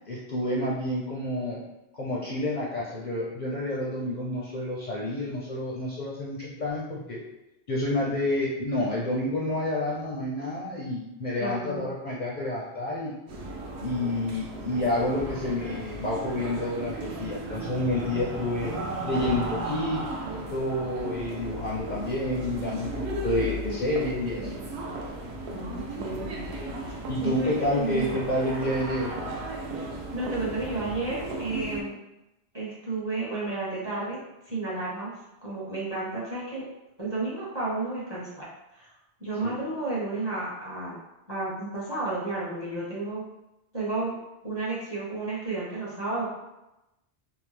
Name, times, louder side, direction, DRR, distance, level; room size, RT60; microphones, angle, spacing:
voice 1, 0.1-1.6 1.9-7.2 7.7-13.1 13.8-18.7 19.1-20.0 20.4-24.5 27.1-29.1 39.4-39.6, left 1 dB, 55° left, -6 dB, 0.6 m, -29 dB
voice 2, 11.4-11.8 23.7-23.9 25.5-25.7 26.0-26.4 27.2-28.3 29.7-31.9 32.5-35.1 35.4-36.6 37.0-38.4 38.7-38.9 39.2-41.0 41.3-43.2 43.7-44.1 44.4-46.3, right 3 dB, 25° right, -8 dB, 0.7 m, -32 dB
sound 1, 13.3-31.8, right 1 dB, 70° right, 0.8 m, -35 dB
2.7 x 2.0 x 3.2 m, 0.93 s
omnidirectional pair, 1.2 m